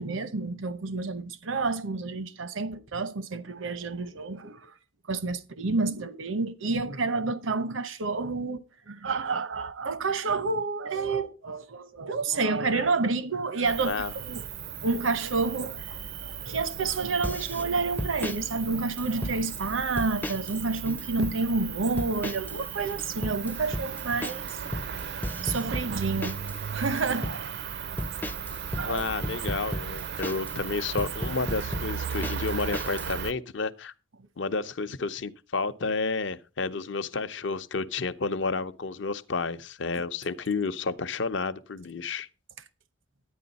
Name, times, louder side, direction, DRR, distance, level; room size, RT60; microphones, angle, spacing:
voice 1, 0.0-4.7 5.1-14.0 14.2-14.4 14.8-25.0 25.4-26.4 26.7-27.9 28.8-29.0 39.9-40.0, right 3 dB, 80° right, 0.9 m, -29 dB
Cricket, 13.7-33.3, right 7 dB, 55° right, 0.4 m, -36 dB
sound 1, 17.2-17.6 18.0-18.4 19.0-19.6 20.0-20.6 20.9-21.4 22.0-22.6 22.8-26.6 27.0-27.4 28.0-30.6 31.0-33.1, left 1 dB, 10° left, 0.4 m, -34 dB
voice 2, 28.8-33.9 34.4-42.3, left 4 dB, 65° left, 0.6 m, -31 dB
10.5 x 9.5 x 4.0 m
head